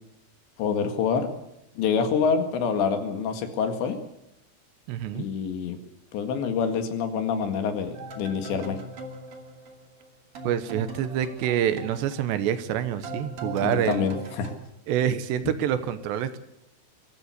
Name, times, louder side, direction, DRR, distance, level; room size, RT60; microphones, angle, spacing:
voice 1, 0.6-1.3 1.8-4.0 5.2-5.8 6.1-8.8 13.6-14.5, left 6 dB, 75° left, 7 dB, 4.1 m, -26 dB
voice 2, 4.9-5.3 10.4-14.1 14.9-16.4, right 10 dB, 75° right, 12 dB, 3.1 m, -26 dB
sound 1, 7.9-10.1 10.3-14.6, equal, 40° right, 2.8 m, -40 dB
22.5 x 14.0 x 8.3 m, 0.84 s
omnidirectional pair, 5.3 m